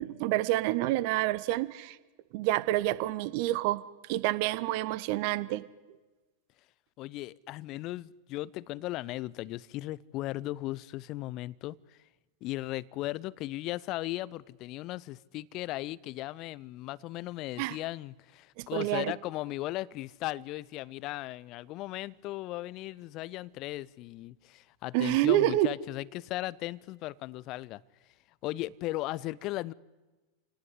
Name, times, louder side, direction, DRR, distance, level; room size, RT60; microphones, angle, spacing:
voice 1, 0.0-2.0 2.3-3.8 4.1-5.6 17.6-17.8 18.6-19.1 24.9-25.7, right 16 dB, 45° right, 17 dB, 1.0 m, -28 dB
voice 2, 7.0-11.8 12.4-27.8 28.4-29.7, left 17 dB, 40° left, 21 dB, 0.8 m, -37 dB
27.5 x 18.5 x 9.9 m, 1.2 s
figure-of-eight pair, 90°, 0 cm